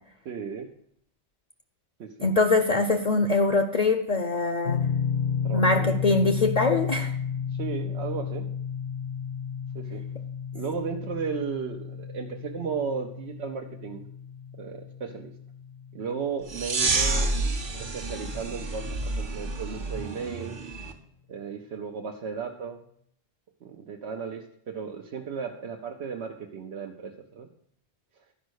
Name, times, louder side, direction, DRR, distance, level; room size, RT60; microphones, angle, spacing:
voice 1, 0.2-0.7 2.0-2.3 5.4-6.0 7.6-8.5 9.7-10.0 10.5-14.1 14.6-15.3 15.9-17.3 17.8-20.6 21.3-22.8 23.6-27.5, right 6 dB, 80° right, 2 dB, 1.0 m, -35 dB
voice 2, 2.2-4.8 5.5-7.1, left 3 dB, 45° left, 7 dB, 0.6 m, -23 dB
sound 1, 4.7-17.6, left 7 dB, 80° left, 1.1 m, -33 dB
sound 2, 16.5-20.9, right 3 dB, 50° right, 1.1 m, -29 dB
11.5 x 5.2 x 6.3 m, 0.71 s
omnidirectional pair, 1.1 m